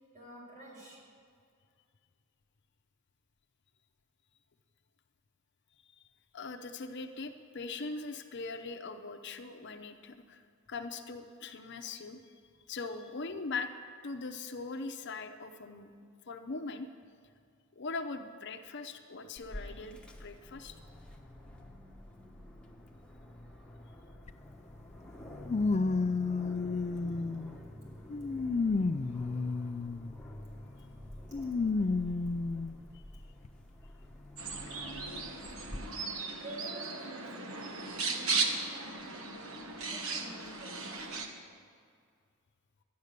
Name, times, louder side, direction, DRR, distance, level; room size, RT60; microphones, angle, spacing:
voice 1, 0.1-1.0 31.3-31.7 36.4-39.6 39.8-41.1, right 1 dB, 40° right, -4 dB, 4.3 m, -50 dB
voice 2, 6.3-10.4 10.7-12.3 12.7-13.7 14.0-15.9 16.3-16.9 17.7-20.8, left 3 dB, 55° left, 7 dB, 0.7 m, -41 dB
Aircraft, 19.4-35.8, left 1 dB, 5° left, 1.1 m, -49 dB
sound 1, 24.3-24.4 25.5-27.5 28.1-30.1 31.3-32.7 33.4-33.5 34.7-34.8, left 3 dB, 30° left, 0.3 m, -31 dB
pitroig i cotorres vr, 34.4-41.3, right 4 dB, 75° right, 1.3 m, -36 dB
12.5 x 10.5 x 6.7 m, 2.2 s
head